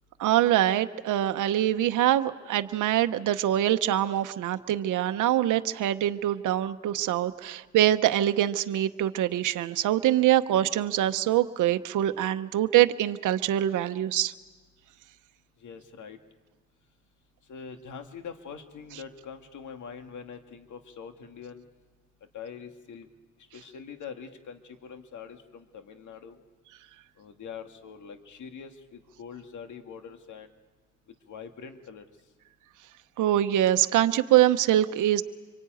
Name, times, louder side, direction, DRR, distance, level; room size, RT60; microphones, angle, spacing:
voice 1, 0.2-14.3 33.2-35.2, right 12 dB, 85° right, 9 dB, 0.8 m, -24 dB
voice 2, 15.6-16.2 17.5-21.6 22.3-23.1 23.5-26.4 27.2-30.5 31.3-32.1, left 6 dB, 75° left, 6 dB, 2.1 m, -43 dB
26.0 x 24.0 x 9.2 m, 1.3 s
supercardioid pair, 55°, 30 cm